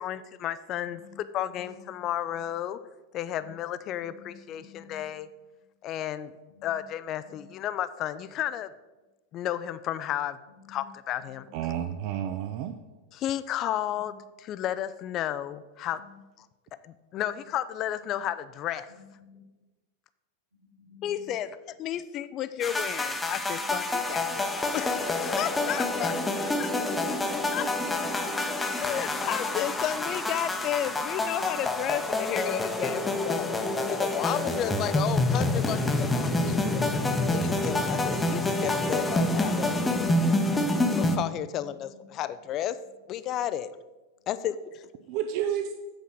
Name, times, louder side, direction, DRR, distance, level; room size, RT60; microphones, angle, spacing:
voice 1, 0.0-2.8 3.1-5.3 5.8-6.3 6.6-8.7 9.3-10.4 10.7-11.5 13.1-14.1 14.4-16.0 16.4-16.5 16.8-18.9 21.0-24.5 24.7-26.8 27.5-27.7 28.8-33.5 33.9-37.0 37.3-40.4 41.0-42.8 43.1-43.7 44.3-44.9, left 11 dB, 35° left, 14 dB, 0.4 m, -33 dB
voice 2, 0.8-1.2 1.4-2.0 3.3-3.5 3.9-5.2 6.5-6.8 7.2-7.7 10.5-10.9 11.5-11.7 13.9-14.1 15.9-16.2 18.0-18.2 18.9-19.4 20.8-21.3 23.6-23.7 29.1-29.6 41.5-42.0 43.3-43.4 44.2-44.3, left 6 dB, 80° right, -4 dB, 3.3 m, -54 dB
voice 3, 11.5-12.7 38.6-38.9 45.1-45.7, right 10 dB, 45° right, 8 dB, 0.4 m, -31 dB
sound 1, 22.6-41.2, left 2 dB, 10° left, 0.7 m, -27 dB
8.1 x 5.0 x 6.3 m, 1.2 s
figure-of-eight pair, 90°, 0 cm